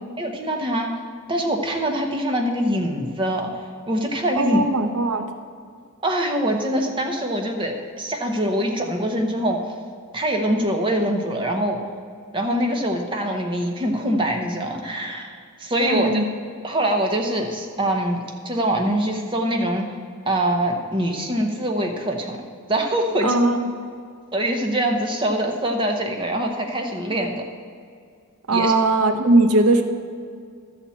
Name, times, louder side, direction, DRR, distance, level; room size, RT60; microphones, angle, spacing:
voice 1, 0.2-0.9 1.3-3.5 3.9-4.6 6.0-9.6 10.1-11.8 12.3-16.1 16.6-18.2 18.4-19.9 20.2-22.4 22.7-23.3 24.3-27.4 28.5-28.7, right 1 dB, 20° right, 2 dB, 1.0 m, -23 dB
voice 2, 4.3-5.3 15.8-16.3 23.2-23.6 28.5-29.8, right 2 dB, 80° right, 6 dB, 0.8 m, -19 dB
13.0 x 4.3 x 8.4 m, 2.2 s
head